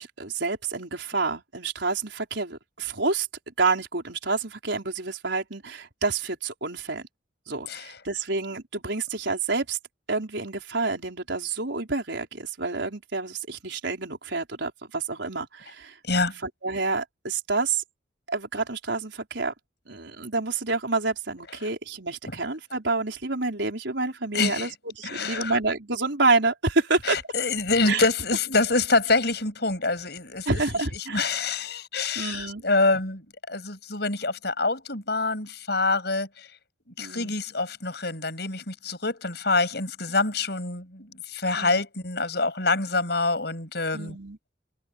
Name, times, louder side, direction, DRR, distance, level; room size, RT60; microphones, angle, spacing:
voice 1, 0.0-3.3 3.6-7.0 7.5-9.8 10.1-16.0 16.6-17.8 18.3-19.5 19.9-27.2 27.9-28.0 30.5-31.4 32.1-32.6 37.0-37.3 41.6-41.8 43.9-44.4, right 3 dB, 70° right, 4.6 m, -28 dB
voice 2, 16.0-16.4 22.3-22.4 24.3-24.7 25.0-25.6 27.0-30.5 31.1-36.5 37.0-44.2, left 3 dB, 60° left, 8.0 m, -26 dB
head